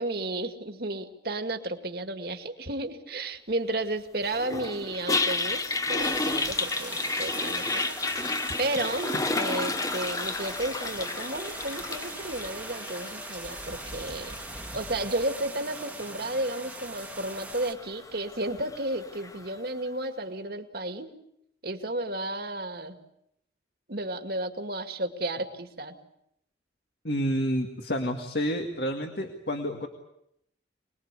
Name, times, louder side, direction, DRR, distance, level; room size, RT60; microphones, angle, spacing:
voice 1, 0.0-14.4 14.7-21.1 21.6-23.0 23.9-26.0, right 1 dB, 55° right, 6 dB, 2.2 m, -33 dB
Toilet flush, 4.3-19.5, left 3 dB, 20° left, 1.0 m, -33 dB
sound 1, 6.0-17.7, right 2 dB, 10° right, 1.6 m, -41 dB
voice 2, 27.0-29.9, equal, 60° left, 4 dB, 2.1 m, -29 dB
26.0 x 20.5 x 8.4 m, 0.75 s
head